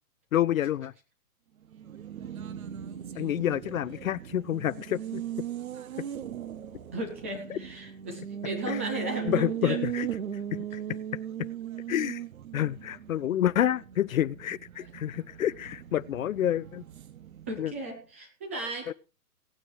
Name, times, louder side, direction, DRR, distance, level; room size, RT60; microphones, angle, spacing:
voice 1, 0.3-0.9 3.2-5.2 6.0-6.1 7.5-7.6 8.7-8.8 9.3-10.1 10.5-11.0 11.4-11.5 11.9-12.2 12.5-16.8 17.6-17.7 18.9-19.0, left 11 dB, 60° left, 0.5 m, -28 dB
Race car auto racing, 1.6-17.9, right 10 dB, 60° right, 1.1 m, -38 dB
voice 2, 6.9-9.8 17.5-18.9, right 1 dB, 10° right, 0.5 m, -35 dB
18.0 x 9.0 x 3.2 m
hypercardioid pair, 145°, 47 cm